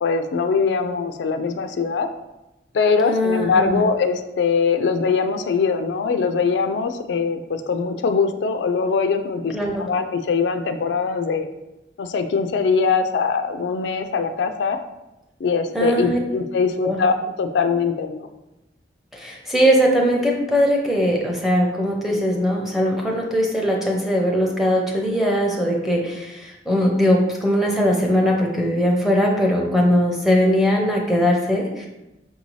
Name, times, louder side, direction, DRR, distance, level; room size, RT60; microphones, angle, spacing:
voice 1, 0.0-2.1 2.7-11.5 12.0-14.8 15.4-18.3, left 5 dB, 80° left, 7 dB, 0.4 m, -22 dB
voice 2, 3.0-3.8 9.5-9.9 15.7-16.2 16.8-17.0 19.1-31.9, equal, ahead, -2 dB, 0.6 m, -20 dB
5.4 x 2.7 x 3.1 m, 0.95 s
head